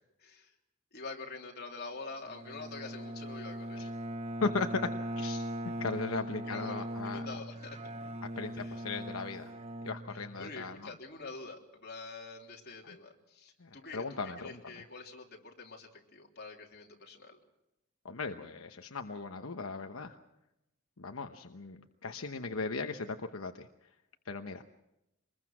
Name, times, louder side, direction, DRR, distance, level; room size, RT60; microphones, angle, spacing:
voice 1, 0.2-0.5 0.9-3.9 6.1-6.9 7.1-7.8 8.6-8.8 10.1-17.4, left 3 dB, 50° left, 1 dB, 3.4 m, -46 dB
Bowed string instrument, 2.3-10.7, equal, 30° right, 1.1 m, -40 dB
voice 2, 4.4-7.4 8.4-9.5 9.8-10.9 12.8-13.0 13.6-14.6 18.0-20.2 21.0-23.7 24.2-24.6, left 4 dB, 80° left, 6 dB, 1.0 m, -37 dB
25.5 x 21.0 x 6.1 m, 0.88 s
head